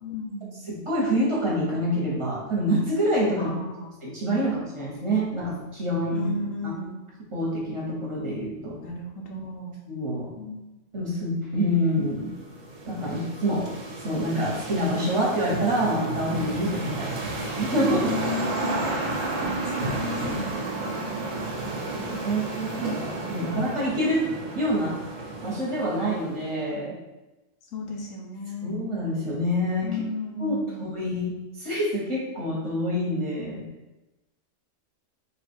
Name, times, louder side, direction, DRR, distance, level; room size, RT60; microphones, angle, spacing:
voice 1, 0.0-0.6 3.4-3.9 6.1-7.0 8.8-9.8 10.4-10.7 17.9-18.8 19.4-21.1 27.7-28.7 29.8-30.9, left 2 dB, 90° left, 0 dB, 1.2 m, -34 dB
voice 2, 0.7-3.5 4.0-6.3 6.6-6.7 7.3-8.8 9.9-10.3 10.9-12.3 12.9-13.7 14.0-17.3 17.6-18.1 21.9-24.2 24.5-25.0 25.4-26.9 28.6-29.9 30.4-31.3 31.6-33.6, equal, 25° right, -6 dB, 1.1 m, -26 dB
sound 1, 12.0-26.5, right 2 dB, 90° right, 1.2 m, -32 dB
3.5 x 2.5 x 4.4 m, 1.0 s
omnidirectional pair, 1.3 m